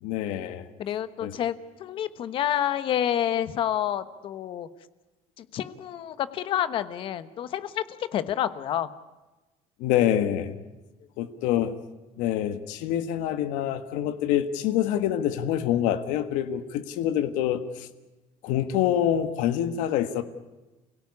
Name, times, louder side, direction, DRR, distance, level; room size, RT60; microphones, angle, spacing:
voice 1, 0.0-0.7 1.2-1.3 9.8-10.6 11.2-11.7 12.2-17.9 18.4-20.2, left 11 dB, 80° left, 9 dB, 1.6 m, -26 dB
voice 2, 0.8-1.5 1.8-4.7 5.4-8.9, left 10 dB, 45° left, 14 dB, 1.2 m, -28 dB
28.5 x 17.0 x 9.8 m, 1.1 s
cardioid pair, 170°, 13 cm